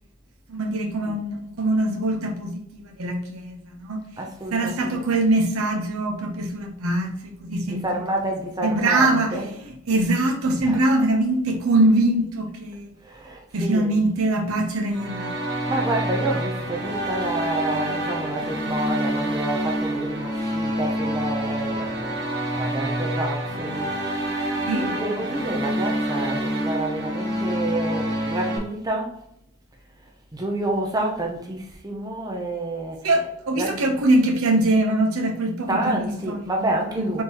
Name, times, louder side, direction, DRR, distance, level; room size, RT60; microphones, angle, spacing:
voice 1, 0.5-4.0 4.5-7.8 8.6-9.4 9.9-12.9 13.5-15.4 24.5-24.8 33.0-36.4 37.0-37.2, right 2 dB, 75° right, 3 dB, 0.7 m, -23 dB
voice 2, 4.2-5.1 7.7-9.6 10.6-10.8 13.0-14.0 15.7-22.1 22.5-24.0 24.8-29.2 30.3-33.2 33.6-34.1 35.7-37.2, right 1 dB, 15° right, 1 dB, 0.5 m, -29 dB
sound 1, 14.9-28.6, right 1 dB, 50° right, 1.1 m, -27 dB
4.5 x 3.6 x 2.9 m, 0.76 s
head